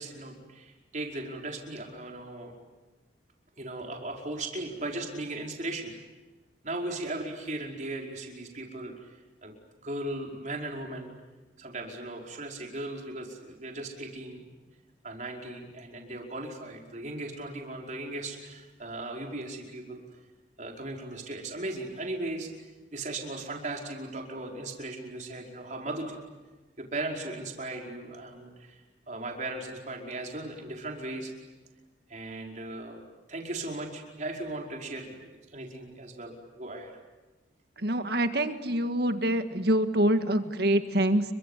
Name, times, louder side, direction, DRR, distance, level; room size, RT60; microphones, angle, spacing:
voice 1, 0.0-2.5 3.6-5.9 6.6-8.9 9.4-9.5 9.8-11.1 11.6-14.5 15.0-20.0 20.6-22.5 22.9-26.2 26.8-31.3 32.1-33.0 33.3-36.9, right 2 dB, 45° right, 1 dB, 5.1 m, -37 dB
voice 2, 37.8-41.2, right 1 dB, 60° right, 8 dB, 1.8 m, -25 dB
30.0 x 24.0 x 8.3 m, 1.2 s
head